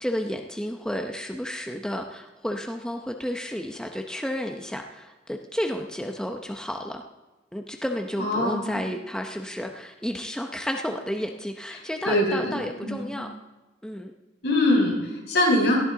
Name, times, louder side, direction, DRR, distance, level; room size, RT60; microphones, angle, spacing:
voice 1, 0.0-7.0 7.5-13.3 13.8-14.1, equal, 5° left, 3 dB, 0.7 m, -31 dB
voice 2, 8.2-8.8 12.1-13.1 14.4-15.8, left 1 dB, 65° left, -2 dB, 5.7 m, -23 dB
18.0 x 14.0 x 3.8 m, 1.1 s
head